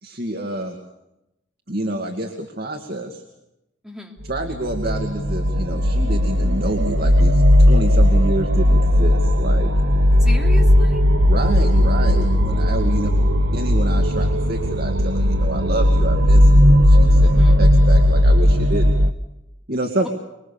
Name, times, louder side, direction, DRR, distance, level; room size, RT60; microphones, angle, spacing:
voice 1, 0.0-0.8 1.7-3.2 4.3-9.7 11.3-13.1 13.5-17.3 17.6-19.0 19.7-20.1, right 1 dB, 55° right, 4 dB, 2.2 m, -28 dB
voice 2, 3.8-4.2 10.2-11.0 13.0-13.5 17.2-17.6, left 1 dB, ahead, 0 dB, 3.3 m, -36 dB
sound 1, 4.3-19.1, equal, 70° right, 1.1 m, -16 dB
25.5 x 22.5 x 7.0 m, 0.90 s
head